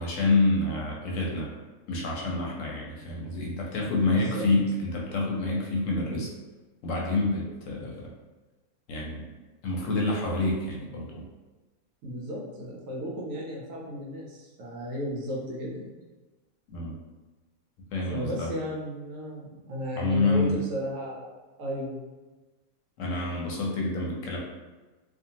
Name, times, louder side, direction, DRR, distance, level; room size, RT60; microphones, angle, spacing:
voice 1, 0.0-1.5 1.9-6.3 6.8-8.1 8.9-9.3 9.6-11.2 16.7-17.0 17.9-18.5 20.0-20.6 23.0-24.4, left 2 dB, 70° left, -2 dB, 0.9 m, -27 dB
voice 2, 3.8-4.5 12.0-15.9 18.1-21.3 21.6-22.1, equal, 70° right, -2 dB, 1.0 m, -34 dB
2.6 x 2.3 x 2.8 m, 1.2 s
omnidirectional pair, 1.5 m